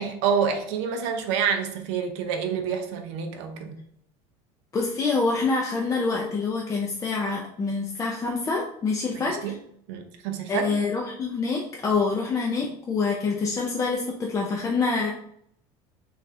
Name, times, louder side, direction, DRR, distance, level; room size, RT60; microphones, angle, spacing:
voice 1, 0.0-3.7 9.1-9.5 9.9-10.7, right 7 dB, 90° right, 5 dB, 0.4 m, -28 dB
voice 2, 4.7-9.6 10.5-15.1, left 4 dB, 20° left, -1 dB, 0.4 m, -26 dB
3.2 x 2.3 x 2.6 m, 0.69 s
cardioid pair, 125°, 14 cm